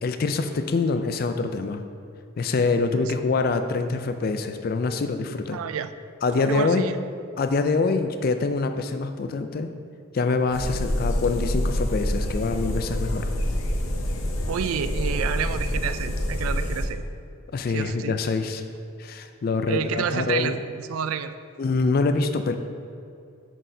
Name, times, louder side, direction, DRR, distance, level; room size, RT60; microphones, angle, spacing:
voice 1, 0.0-1.8 2.4-5.6 6.2-6.9 7.4-9.7 10.1-13.3 17.5-18.6 19.0-20.6 21.6-22.6, left 4 dB, 45° left, 8 dB, 0.3 m, -25 dB
voice 2, 5.5-5.9 6.4-6.9 14.5-17.0 17.7-18.2 19.7-21.3, right 7 dB, 85° right, 12 dB, 0.3 m, -29 dB
sound 1, 10.5-16.9, left 1 dB, 75° left, 0.7 m, -27 dB
7.5 x 6.2 x 2.7 m, 2.4 s
head